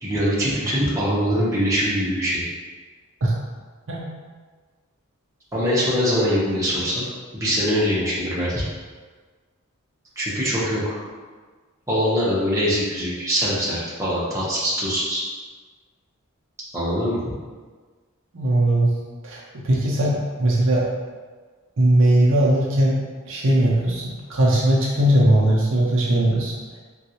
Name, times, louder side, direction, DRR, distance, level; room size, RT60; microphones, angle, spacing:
voice 1, 0.0-2.4 5.5-7.0 7.3-8.6 10.2-10.8 11.9-15.2 16.7-17.2, equal, 15° right, -8 dB, 0.8 m, -23 dB
voice 2, 18.3-18.9 19.2-20.9 21.8-23.0 23.3-26.5, right 1 dB, 60° right, -4 dB, 0.6 m, -19 dB
3.7 x 2.3 x 2.8 m, 1.4 s
head